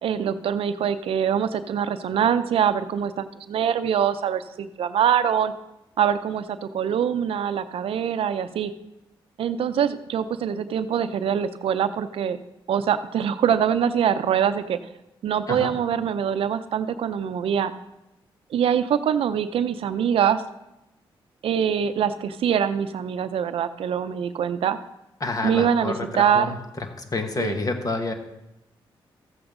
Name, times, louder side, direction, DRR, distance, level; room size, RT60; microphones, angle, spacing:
voice 1, 0.0-5.5 6.0-8.7 9.4-12.4 12.7-14.8 15.2-17.7 18.5-20.4 21.4-24.8 25.4-26.5 27.4-27.6, right 8 dB, 75° right, 11 dB, 0.6 m, -24 dB
voice 2, 25.2-28.1, left 3 dB, 40° left, 5 dB, 1.5 m, -29 dB
14.0 x 8.0 x 3.8 m, 0.91 s
cardioid pair, 65°, 10 cm